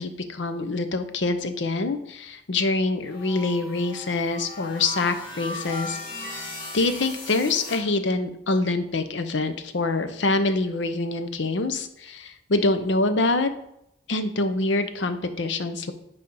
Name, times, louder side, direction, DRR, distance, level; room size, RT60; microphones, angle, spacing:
voice 1, 0.0-6.0 6.7-13.5 14.1-15.9, left 2 dB, 80° left, 9 dB, 0.7 m, -25 dB
sound 1, 3.0-7.8, left 2 dB, 45° left, 2.1 m, -37 dB
9.4 x 3.5 x 5.3 m, 0.81 s
head